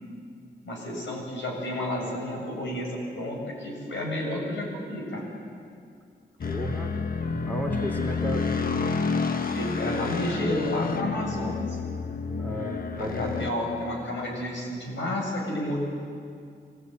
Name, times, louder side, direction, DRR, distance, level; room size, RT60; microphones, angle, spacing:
voice 1, 0.6-5.3 9.5-11.8 13.0-15.8, left 1 dB, 85° left, -1 dB, 7.5 m, -31 dB
sound 1, 6.4-13.5, left 4 dB, 50° left, 1.4 m, -29 dB
voice 2, 6.4-6.9 7.5-8.5 12.4-13.5, equal, 10° left, -1 dB, 3.3 m, -34 dB
25.5 x 17.5 x 9.6 m, 2.3 s
wide cardioid pair, 135°, 19 cm